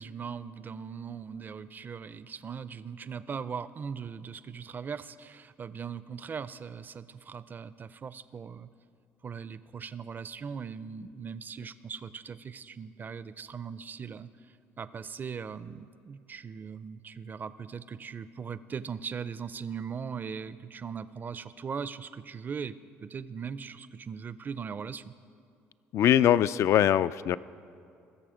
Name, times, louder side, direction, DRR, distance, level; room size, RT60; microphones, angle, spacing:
voice 1, 0.0-8.7 9.2-25.1, right 6 dB, 35° right, 15 dB, 0.5 m, -39 dB
voice 2, 25.9-27.4, left 11 dB, 60° left, 17 dB, 0.3 m, -22 dB
20.0 x 6.9 x 5.0 m, 2.4 s
supercardioid pair, 85°, 6 cm